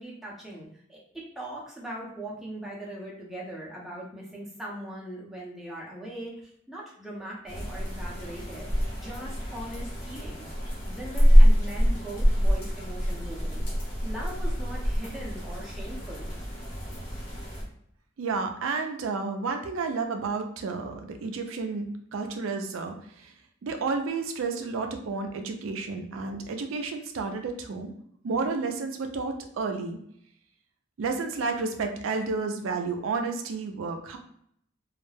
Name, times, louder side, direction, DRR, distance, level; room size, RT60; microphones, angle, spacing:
voice 1, 0.0-13.7 14.0-16.3, right 1 dB, ahead, -5 dB, 0.6 m, -40 dB
sound 1, 7.5-17.6, equal, 45° left, 0.9 m, -25 dB
voice 2, 18.2-21.9 22.1-23.3 23.6-27.9 28.2-30.0 31.0-34.2, right 4 dB, 80° right, 5 dB, 0.4 m, -31 dB
2.3 x 2.1 x 3.2 m, 0.69 s
head